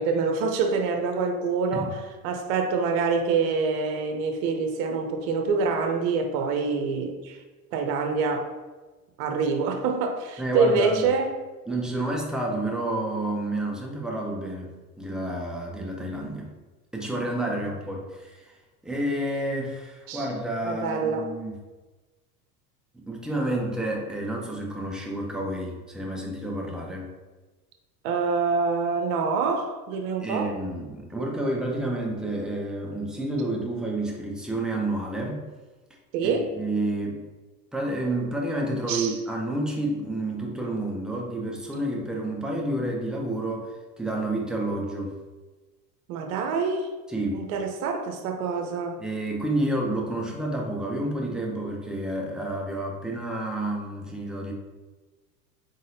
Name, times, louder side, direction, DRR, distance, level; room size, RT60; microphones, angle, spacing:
voice 1, 0.0-7.4 7.7-8.5 9.2-11.4 17.4-17.6 20.1-20.3 20.6-21.3 28.0-30.5 36.1-36.5 38.9-39.2 46.1-46.9 47.3-49.0, right 4 dB, 60° right, 4 dB, 0.8 m, -26 dB
voice 2, 10.4-11.0 11.7-14.7 15.0-16.5 16.9-18.4 18.8-21.6 22.9-27.1 30.2-35.5 36.2-37.2 37.7-45.2 47.1-47.4 49.0-54.5, right 1 dB, ahead, -1 dB, 0.6 m, -29 dB
3.9 x 3.6 x 2.7 m, 1.3 s
hypercardioid pair, 90°, 48 cm